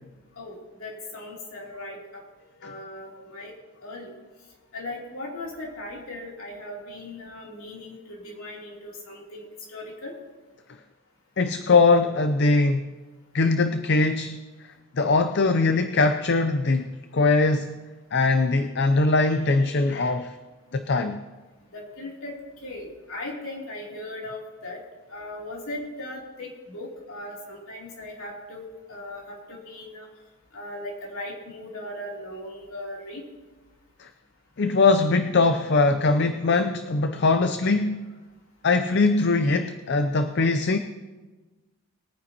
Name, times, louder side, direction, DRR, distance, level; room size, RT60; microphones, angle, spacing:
voice 1, 0.4-2.2 2.6-3.5 3.8-4.1 4.7-10.1 21.7-22.3 22.6-24.8 25.1-30.1 30.5-33.2, left 1 dB, 65° left, -3 dB, 3.1 m, -38 dB
voice 2, 11.4-12.8 13.3-14.4 15.0-17.8 18.1-20.4 20.7-21.2 34.0-34.1 34.6-38.0 38.6-40.8, left 3 dB, 50° left, 8 dB, 0.5 m, -21 dB
21.5 x 9.5 x 2.9 m, 1.3 s
head